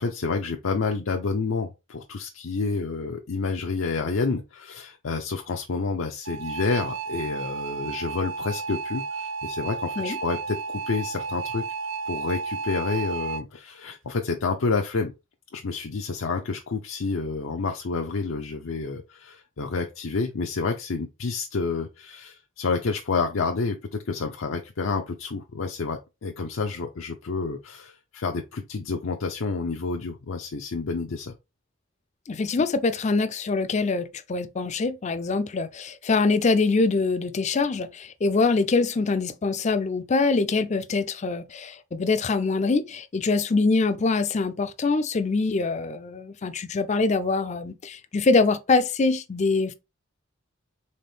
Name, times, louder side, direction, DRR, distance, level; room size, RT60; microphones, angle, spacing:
voice 1, 0.0-11.6 12.1-15.1 15.5-31.3, left 4 dB, 80° left, 0.6 m, -29 dB
sound 1, 6.2-13.4, right 5 dB, 65° right, 0.4 m, -32 dB
voice 2, 32.3-49.7, left 3 dB, 35° left, 0.4 m, -24 dB
4.2 x 3.5 x 3.4 m
head